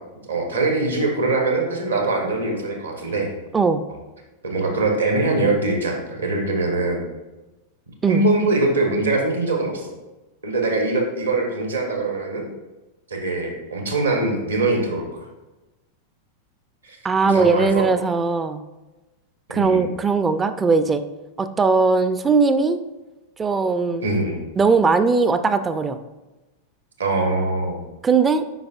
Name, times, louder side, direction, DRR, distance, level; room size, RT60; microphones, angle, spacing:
voice 1, 0.3-3.3 3.9-4.0 4.4-7.0 8.1-9.9 10.4-12.5 13.1-15.3 16.8-17.0 17.2-17.9 19.5-19.9 24.0-24.4 27.0-27.8, right 2 dB, 75° right, 2 dB, 1.3 m, -22 dB
voice 2, 17.0-18.6 19.5-21.0 21.4-22.8 23.4-24.0 24.6-26.0 28.0-28.4, right 4 dB, 15° right, 11 dB, 0.4 m, -19 dB
8.0 x 5.0 x 2.4 m, 1.1 s
figure-of-eight pair, 90°, 0 cm